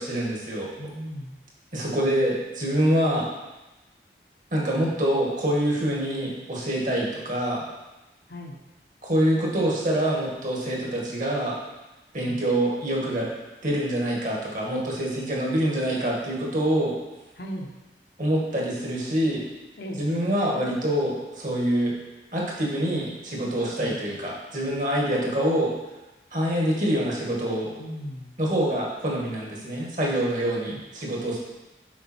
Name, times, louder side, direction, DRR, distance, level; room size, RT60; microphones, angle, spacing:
voice 1, 0.0-0.7 1.7-3.3 4.5-7.6 9.0-11.6 12.1-13.3 13.6-17.0 18.2-19.4 20.0-21.9 22.3-25.7 26.3-27.7 28.4-31.4, right 1 dB, 45° right, -3 dB, 1.8 m, -25 dB
voice 2, 0.8-1.3 8.3-8.6 12.2-12.4 17.4-17.7 19.8-20.0 23.8-23.9 27.8-28.3 30.7-30.8, equal, 70° left, 1 dB, 1.0 m, -36 dB
7.2 x 5.2 x 4.5 m, 1.1 s
head